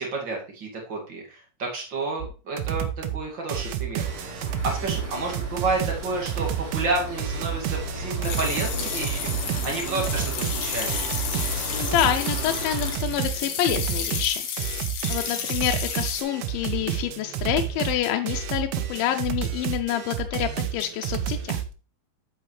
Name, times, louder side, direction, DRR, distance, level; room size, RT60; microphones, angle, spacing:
voice 1, 0.0-4.0 4.4-11.1, right 3 dB, 35° right, 0 dB, 2.4 m, -30 dB
sound 1, 2.2-2.3 2.6-3.2 3.5-21.7, right 10 dB, 75° right, 2.0 m, -30 dB
sound 2, 4.0-13.0, equal, 55° right, 4.9 m, -35 dB
sound 3, 8.2-16.2, left 7 dB, 60° left, 2.1 m, -32 dB
voice 2, 11.7-14.4 15.1-21.6, left 11 dB, 90° left, 5 dB, 2.4 m, -27 dB
8.3 x 7.7 x 3.2 m, 0.34 s
omnidirectional pair, 4.0 m